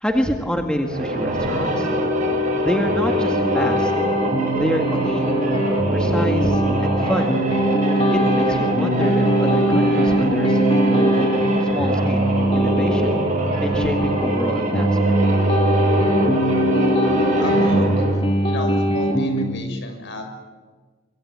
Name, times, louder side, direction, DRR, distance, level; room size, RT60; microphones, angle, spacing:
voice 1, 0.0-1.9 2.6-3.9 4.6-5.3 5.9-7.3 8.1-12.2 12.6-13.1 13.6-15.1, equal, 5° left, 3 dB, 1.9 m, -27 dB
sound 1, 0.8-18.3, equal, 35° right, 7.3 m, -24 dB
sound 2, 2.9-19.4, right 1 dB, 25° left, 2.8 m, -21 dB
voice 2, 17.4-18.1 18.4-20.2, left 2 dB, 60° left, 6 dB, 6.4 m, -32 dB
24.5 x 24.0 x 8.8 m, 1.4 s
head